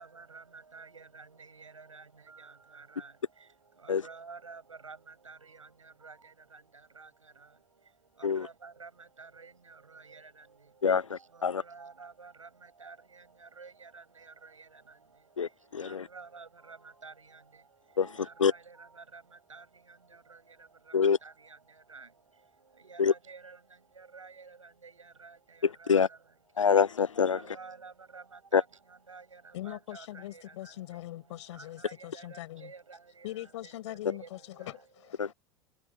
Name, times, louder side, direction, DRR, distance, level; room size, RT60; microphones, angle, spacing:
voice 1, 0.0-3.1 3.4-6.6 6.9-7.1 7.4-7.5 8.2-10.5 11.1-15.0 15.8-17.6 18.0-20.9 21.2-22.1 22.8-26.2 27.3-30.8 31.5-34.8, right 4 dB, 90° right, 6.0 m, -51 dB
voice 2, 10.8-11.6 15.4-16.1 18.0-18.1 18.4-18.5 20.9-21.2 23.0-23.1 25.9-26.1 26.6-27.4 28.5-28.6 35.2-35.3, left 6 dB, 90° left, 0.6 m, -25 dB
voice 3, 29.5-32.7 33.2-35.3, left 15 dB, 65° left, 7.2 m, -42 dB
figure-of-eight pair, 85°, 16 cm